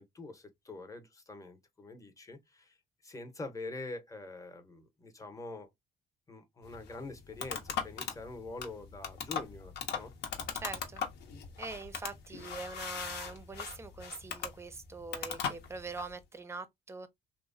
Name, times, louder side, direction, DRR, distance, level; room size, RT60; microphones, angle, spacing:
voice 1, 0.0-2.8 3.0-5.7 6.3-10.1, left 2 dB, 20° left, 0.7 m, -45 dB
sound 1, 6.6-16.1, left 7 dB, 80° left, 0.8 m, -39 dB
voice 2, 10.5-11.0 11.6-17.1, right 3 dB, 15° right, 0.5 m, -43 dB
2.9 x 2.0 x 2.6 m
cardioid pair, 110°, 17 cm